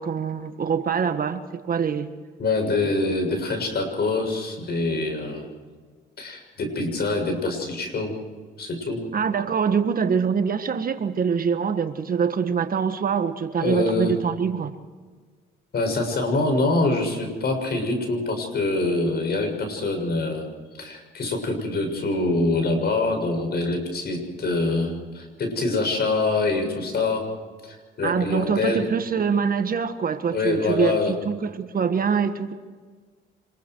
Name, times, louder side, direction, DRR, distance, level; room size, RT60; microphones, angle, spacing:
voice 1, 0.0-2.1 9.1-14.7 28.0-32.5, right 6 dB, 45° right, 9 dB, 1.6 m, -24 dB
voice 2, 2.4-5.5 6.2-8.2 8.6-9.0 13.6-14.2 15.7-20.5 20.8-27.3 27.6-28.9 30.3-31.1, left 3 dB, 55° left, 4 dB, 6.9 m, -25 dB
26.5 x 22.0 x 4.7 m, 1.5 s
cardioid pair, 90°, 20 cm